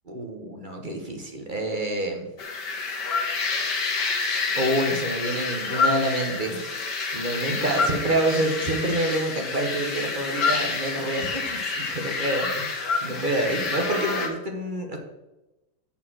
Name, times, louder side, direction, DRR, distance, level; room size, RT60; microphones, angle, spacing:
voice 1, 0.1-2.3 4.5-6.6 7.1-15.0, right 1 dB, 30° right, 2 dB, 1.1 m, -27 dB
sound 1, 2.4-14.3, left 4 dB, 55° left, 2.2 m, -28 dB
7.4 x 6.7 x 6.2 m, 1.0 s
omnidirectional pair, 2.2 m